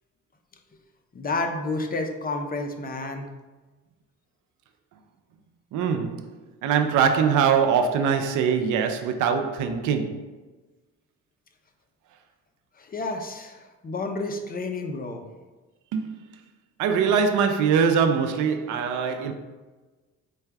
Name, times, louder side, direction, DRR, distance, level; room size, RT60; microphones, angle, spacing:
voice 1, 1.1-3.3 12.8-15.2, left 2 dB, 30° left, 0.6 m, -30 dB
voice 2, 5.7-10.3 15.9-16.1 16.8-19.3, right 6 dB, 80° right, 0.5 m, -23 dB
4.7 x 2.3 x 4.5 m
cardioid pair, 90°, 30 cm